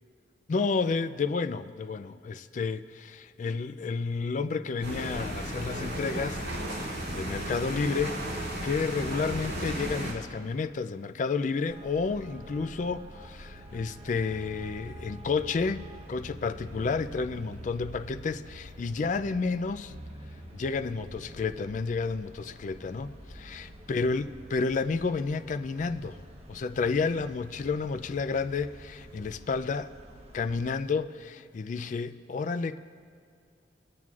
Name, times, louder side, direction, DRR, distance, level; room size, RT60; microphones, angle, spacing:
voice 1, 0.5-19.9 20.5-26.2 26.5-29.9 30.3-32.8, left 4 dB, 45° left, 0.3 m, -31 dB
sound 1, 4.8-10.1, right 1 dB, 65° right, 3.2 m, -34 dB
Traffic noise roadway noise, 11.7-30.7, right 1 dB, 35° right, 1.1 m, -47 dB
22.0 x 9.2 x 2.4 m
head